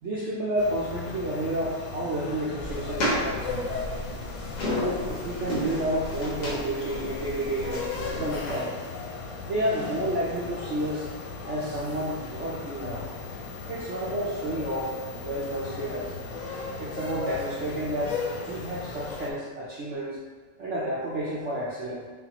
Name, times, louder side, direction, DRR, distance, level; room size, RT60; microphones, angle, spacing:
voice 1, 0.0-3.8 4.7-8.7 9.4-11.1 11.5-13.1 13.7-16.2 16.8-20.2 20.6-22.0, right 1 dB, 80° right, -6 dB, 0.6 m, -31 dB
sound 1, 0.6-19.3, left 4 dB, 90° left, 1.3 m, -36 dB
sound 2, 2.6-8.6, equal, 65° left, 1.5 m, -33 dB
5.3 x 2.3 x 2.8 m, 1.4 s
omnidirectional pair, 1.9 m